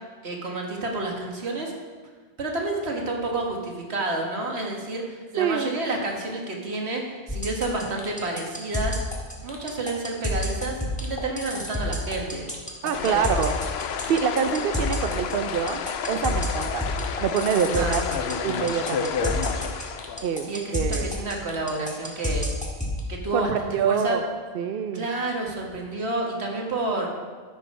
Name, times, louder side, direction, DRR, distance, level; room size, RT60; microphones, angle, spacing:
voice 1, 0.2-1.7 2.4-9.0 9.4-12.5 13.1-13.3 17.8-18.0 20.5-22.5 23.1-24.2 24.9-27.1, right 2 dB, 85° right, 0 dB, 1.8 m, -30 dB
voice 2, 5.4-5.7 12.8-13.6 14.1-16.8 17.2-18.0 18.4-19.3 20.2-21.1 23.3-24.2 24.5-25.1, right 7 dB, 65° right, 8 dB, 0.8 m, -26 dB
sound 1, 7.3-23.0, equal, 5° left, 1.5 m, -29 dB
sound 2, 12.9-20.3, left 7 dB, 75° left, 0.8 m, -30 dB
13.5 x 5.7 x 5.3 m, 1.5 s
omnidirectional pair, 1.1 m